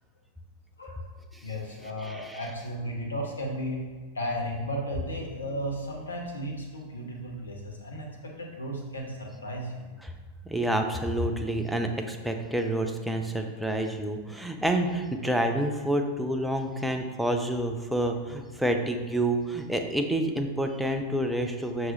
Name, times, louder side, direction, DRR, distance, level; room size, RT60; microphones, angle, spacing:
voice 1, 1.4-3.9 4.1-9.9, equal, 75° left, 0 dB, 0.8 m, -34 dB
voice 2, 2.0-2.4 10.0-10.1 10.5-21.9, right 1 dB, 5° right, 4 dB, 0.4 m, -28 dB
5.9 x 2.6 x 3.2 m, 1.4 s
figure-of-eight pair, 90°, 0 cm